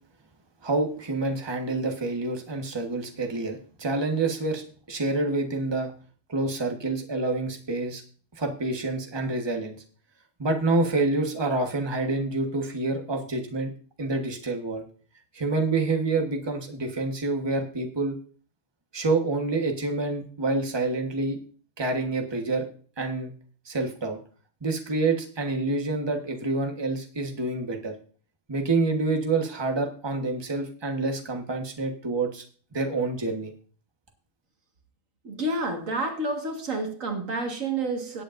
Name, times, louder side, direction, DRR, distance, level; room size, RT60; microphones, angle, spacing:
voice 1, 0.6-5.9 6.3-8.0 8.4-9.8 10.4-13.7 14.0-14.8 15.3-18.2 18.9-21.4 21.8-22.6 23.0-23.3 23.6-24.2 24.6-27.9 28.5-32.4 32.7-33.5, right 3 dB, 20° right, 4 dB, 1.3 m, -27 dB
voice 2, 35.2-38.2, right 2 dB, 85° right, 3 dB, 2.1 m, -29 dB
18.0 x 8.3 x 2.6 m, 0.42 s
omnidirectional pair, 1.3 m